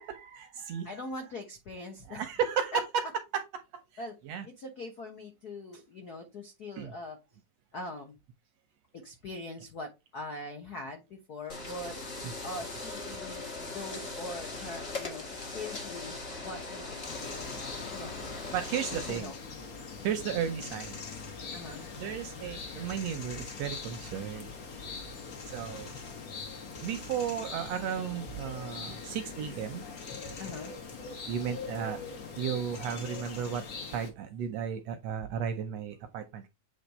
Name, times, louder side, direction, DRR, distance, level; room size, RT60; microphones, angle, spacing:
voice 1, 0.0-1.1 2.1-3.0 3.3-3.8 4.2-4.4 6.8-6.9 12.2-12.3 18.5-19.3 20.0-21.0 22.0-24.5 25.5-25.9 26.8-29.9 31.3-32.0 32.4-36.5, right 8 dB, 75° right, 1.6 m, -34 dB
voice 2, 0.8-2.2 2.7-2.8 4.0-4.1 4.4-7.2 7.7-8.1 8.9-12.0 12.4-15.3 15.5-16.2 16.4-18.1 18.9-19.3 21.5-21.9 30.4-30.7, left 2 dB, 80° left, 0.8 m, -42 dB
sound 1, 11.5-19.2, left 3 dB, 30° left, 1.1 m, -40 dB
sound 2, 17.0-34.1, left 4 dB, 55° left, 0.9 m, -42 dB
8.3 x 3.2 x 4.1 m
omnidirectional pair, 3.6 m